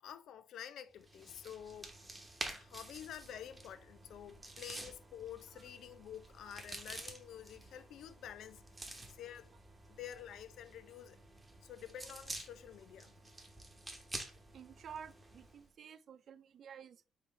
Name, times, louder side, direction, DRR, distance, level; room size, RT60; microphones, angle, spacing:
voice 1, 0.0-1.9 2.5-9.5 9.9-11.2 11.6-13.1, left 10 dB, 75° left, 0.4 m, -49 dB
sound 1, 1.0-15.7, right 1 dB, 15° right, 1.0 m, -50 dB
voice 2, 14.5-17.1, right 7 dB, 60° right, 0.3 m, -51 dB
4.4 x 3.7 x 3.1 m
cardioid pair, 90°, 0 cm